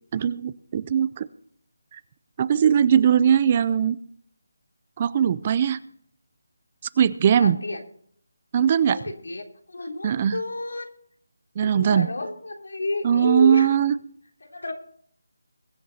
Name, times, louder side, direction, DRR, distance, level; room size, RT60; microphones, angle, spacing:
voice 1, 0.1-1.3 1.9-2.0 2.4-4.0 5.0-5.8 7.0-7.6 8.5-9.0 10.0-10.4 11.6-12.1 13.0-13.9, right 8 dB, 25° right, 18 dB, 0.4 m, -20 dB
voice 2, 7.4-7.8 8.9-10.9 11.6-13.7 14.4-14.7, left 2 dB, 85° left, 2 dB, 3.2 m, -31 dB
22.0 x 8.2 x 4.1 m, 0.62 s
figure-of-eight pair, 170°, 0 cm